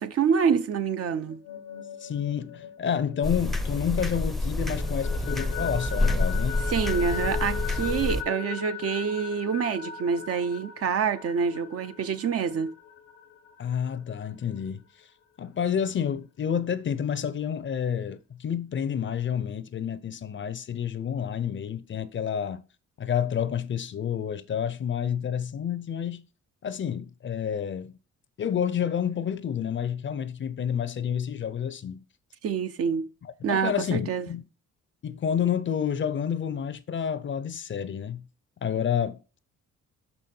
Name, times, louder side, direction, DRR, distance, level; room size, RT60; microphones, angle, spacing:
voice 1, 0.0-1.4 6.7-12.7 32.4-33.1 33.4-34.3, right 6 dB, 50° right, 0.7 m, -27 dB
sound 1, 1.3-4.1 4.5-13.9, left 9 dB, 90° left, 1.0 m, -38 dB
voice 2, 2.0-6.6 13.6-14.8 15.4-22.6 23.0-26.2 26.6-28.0 28.4-32.0 33.2-34.4 35.0-38.2 38.6-39.4, left 8 dB, 40° left, 0.6 m, -29 dB
sound 2, 3.2-8.2, left 2 dB, ahead, 0.6 m, -28 dB
5.9 x 5.4 x 4.4 m
cardioid pair, 90°, 30 cm